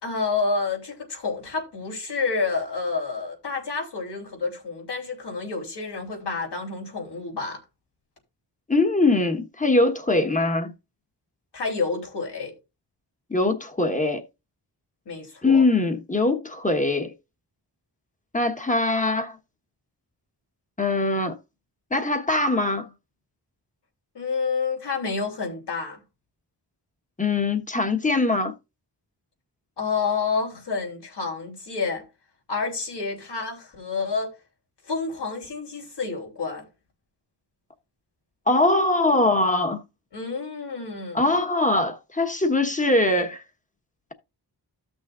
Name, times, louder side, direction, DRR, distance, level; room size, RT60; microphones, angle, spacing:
voice 1, 0.0-7.6 11.5-12.5 15.0-15.6 24.1-26.0 29.8-32.0 32.5-34.3 34.9-36.7 40.1-41.3, left 4 dB, 75° left, 3.3 m, -29 dB
voice 2, 8.7-10.7 13.3-14.2 15.4-17.1 18.3-19.4 20.8-21.3 21.9-22.9 27.2-28.5 38.5-39.8 41.1-43.4, left 2 dB, 20° left, 1.2 m, -22 dB
14.5 x 6.3 x 2.5 m
wide cardioid pair, 120°, 42 cm